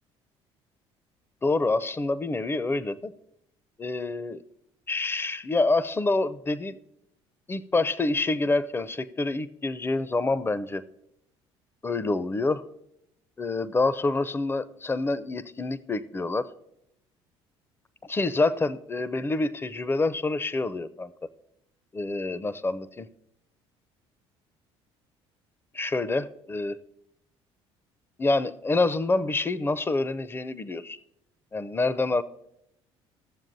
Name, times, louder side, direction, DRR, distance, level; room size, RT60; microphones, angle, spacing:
voice 1, 1.4-3.1 3.8-4.4 4.9-6.8 7.5-10.8 11.8-12.6 13.4-16.5 18.0-21.1 21.9-23.1 25.7-26.8 28.2-31.0 31.5-32.2, left 3 dB, 15° left, 0.5 m, -27 dB
15.5 x 7.2 x 2.6 m
hypercardioid pair, 65°, 13 cm